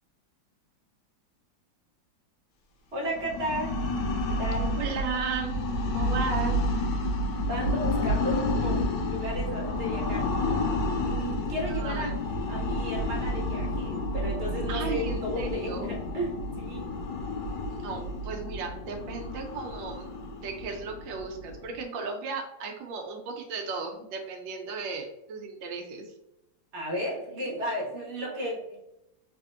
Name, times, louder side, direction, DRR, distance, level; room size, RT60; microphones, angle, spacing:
voice 1, 2.9-3.7 4.3-4.7 7.5-10.3 11.0-12.1 12.5-16.9 26.7-28.8, equal, 45° right, -2 dB, 1.1 m, -34 dB
sound 1, 3.1-21.8, left 1 dB, 75° left, 1.2 m, -30 dB
voice 2, 4.8-6.6 11.7-12.2 14.7-15.9 17.7-20.1 20.4-26.1, right 4 dB, 85° right, 3 dB, 1.3 m, -35 dB
3.4 x 3.4 x 2.4 m, 0.87 s
omnidirectional pair, 2.0 m